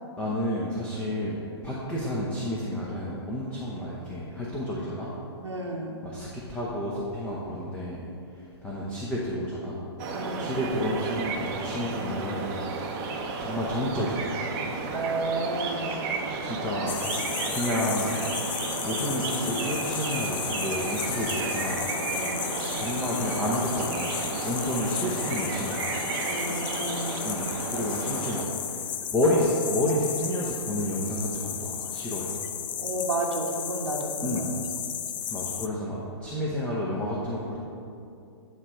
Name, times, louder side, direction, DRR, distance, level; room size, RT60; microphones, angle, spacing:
voice 1, 0.2-5.1 6.0-8.0 8.6-9.8 10.4-12.8 13.4-14.3 16.4-17.0 17.5-18.2 18.8-21.9 22.8-26.0 27.2-28.8 29.1-32.3 34.2-34.5 35.3-37.6, left 1 dB, 10° left, -6 dB, 0.9 m, -30 dB
voice 2, 5.4-6.0 10.1-10.5 14.9-16.0 22.1-22.6 26.2-27.3 32.8-34.5, right 2 dB, 85° right, -2 dB, 1.0 m, -32 dB
sound 1, 10.0-28.5, right 4 dB, 30° right, 0.8 m, -33 dB
sound 2, 16.9-35.7, left 9 dB, 45° left, 0.5 m, -34 dB
9.8 x 3.3 x 5.6 m, 2.6 s
figure-of-eight pair, 125°, 14 cm